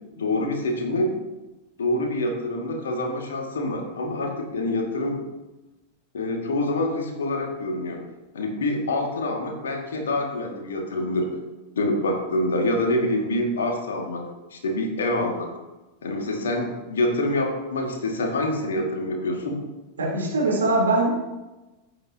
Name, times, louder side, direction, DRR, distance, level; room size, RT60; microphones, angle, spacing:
voice 1, 0.1-1.2 1.8-5.2 6.1-8.0 8.3-11.3 11.8-14.2 14.5-15.5 16.0-19.6, left 1 dB, 65° left, 2 dB, 2.2 m, -26 dB
voice 2, 20.0-21.1, right 2 dB, 70° right, -2 dB, 3.7 m, -22 dB
15.0 x 8.8 x 2.9 m, 1.1 s
figure-of-eight pair, 90°, 0 cm